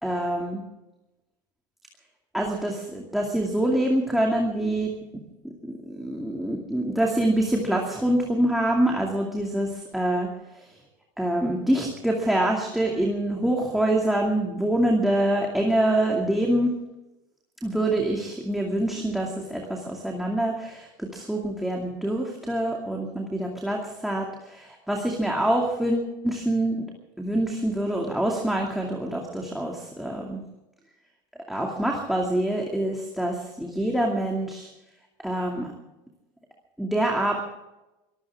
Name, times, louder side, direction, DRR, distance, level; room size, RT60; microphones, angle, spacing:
voice 1, 0.0-0.6 2.3-4.9 5.4-10.3 10.5-10.7 11.2-16.7 17.6-26.9 27.2-30.4 31.5-34.7 35.2-35.7 36.8-37.4, right 1 dB, ahead, -1 dB, 2.4 m, -25 dB
23.5 x 16.0 x 3.6 m, 0.99 s
cardioid pair, 150°, 11 cm